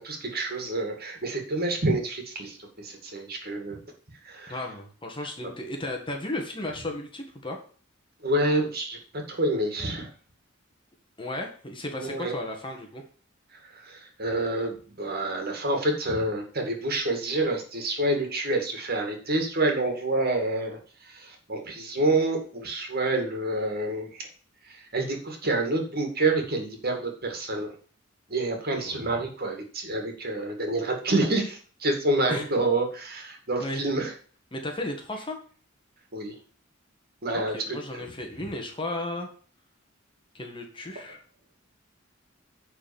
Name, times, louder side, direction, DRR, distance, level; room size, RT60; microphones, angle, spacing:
voice 1, 0.0-3.8 4.2-4.6 8.2-10.1 12.0-12.4 13.6-24.3 24.6-27.7 28.3-34.1 36.1-36.3 37.2-37.8, right 2 dB, 50° right, 3 dB, 2.4 m, -28 dB
voice 2, 4.5-7.6 11.2-13.0 28.8-29.0 32.3-32.7 33.6-33.8 34.5-35.4 37.3-39.3 40.3-41.2, left 1 dB, 25° left, 2 dB, 1.7 m, -34 dB
9.8 x 4.4 x 7.1 m, 0.42 s
head